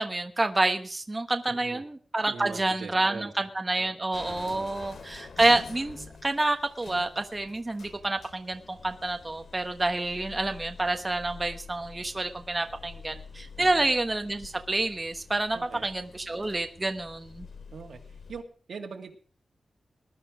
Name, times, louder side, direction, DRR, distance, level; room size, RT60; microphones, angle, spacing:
voice 1, 0.0-6.0 6.2-17.5, right 2 dB, 20° right, 6 dB, 1.2 m, -28 dB
voice 2, 1.5-1.8 2.2-3.3 4.3-4.7 13.6-13.9 15.5-15.9 17.7-18.4 18.7-19.2, right 5 dB, 90° right, 2 dB, 2.3 m, -42 dB
sound 1, 4.1-18.4, left 5 dB, 75° left, 2.7 m, -47 dB
20.0 x 11.5 x 5.0 m, 0.41 s
wide cardioid pair, 170°, 0 cm